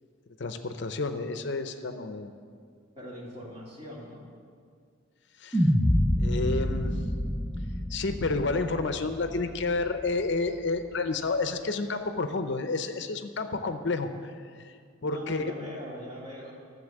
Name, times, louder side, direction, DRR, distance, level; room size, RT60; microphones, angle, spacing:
voice 1, 0.4-2.3 5.4-5.7 6.2-6.9 7.9-14.7 15.0-15.5, left 3 dB, 60° left, 8 dB, 0.6 m, -30 dB
voice 2, 3.0-4.2 15.0-16.5, equal, 30° right, -3 dB, 2.4 m, -41 dB
sound 1, 5.5-9.9, equal, 5° left, 0.8 m, -27 dB
13.0 x 7.1 x 7.2 m, 2.1 s
head